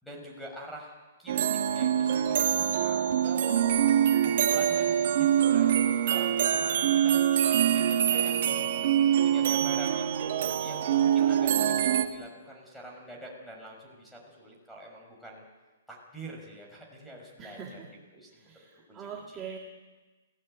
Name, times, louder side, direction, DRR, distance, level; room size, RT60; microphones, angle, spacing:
voice 1, 0.0-3.4 4.2-8.4 9.2-15.4 15.9-17.8 18.1-18.5 18.9-19.1, right 1 dB, ahead, -1 dB, 6.3 m, -46 dB
sound 1, 1.3-12.0, right 9 dB, 50° right, 2.0 m, -24 dB
voice 2, 8.2-8.9 10.6-10.7 17.4-17.9 18.3-19.6, right 7 dB, 15° right, -1 dB, 2.4 m, -44 dB
28.5 x 18.5 x 9.1 m, 1.3 s
hypercardioid pair, 160°, 0 cm